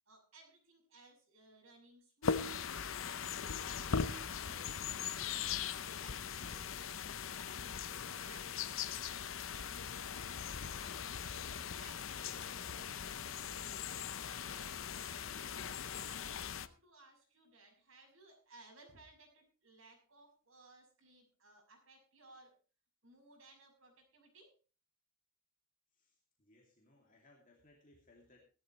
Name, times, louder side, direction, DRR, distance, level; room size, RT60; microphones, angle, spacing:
voice 1, 0.1-7.6 8.1-10.6 11.2-14.7 15.1-15.6 15.9-22.6 23.0-24.5, right 2 dB, 70° right, 1 dB, 6.4 m, -62 dB
sound 1, 2.2-16.7, left 7 dB, 65° left, 0.7 m, -40 dB
voice 2, 25.9-28.4, left 2 dB, 40° left, -1 dB, 2.6 m, -66 dB
17.0 x 13.0 x 3.2 m, 0.35 s
head